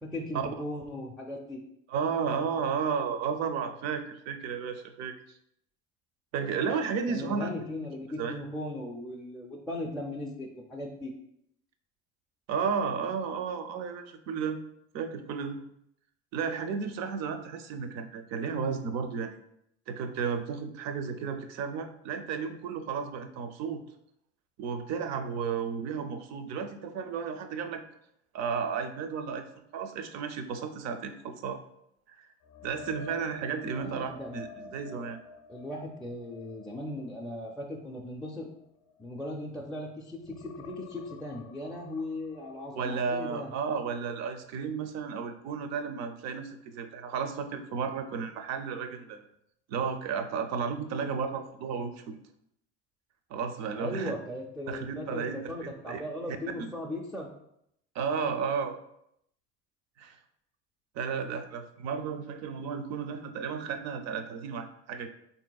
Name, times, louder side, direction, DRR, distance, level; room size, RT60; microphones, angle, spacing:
voice 1, 0.0-1.6 7.1-11.1 33.7-34.7 35.5-38.5 39.0-43.5 53.8-57.3, left 1 dB, ahead, -2 dB, 0.4 m, -38 dB
voice 2, 1.9-5.4 6.3-7.5 8.2-8.4 12.5-14.6 14.9-15.6 16.3-19.4 19.9-23.8 24.6-27.8 28.3-31.6 32.1-32.3 32.6-35.2 42.8-49.3 49.7-52.2 53.3-54.1 54.7-56.0 56.6-56.7 57.9-58.8 60.0-60.2 60.9-65.1, right 6 dB, 55° right, 8 dB, 0.5 m, -33 dB
sound 1, 32.4-39.8 40.2-44.1 44.4-44.7 48.0-48.1, left 3 dB, 60° left, 0.5 m, -50 dB
3.6 x 2.7 x 2.3 m, 0.76 s
hypercardioid pair, 70°, 33 cm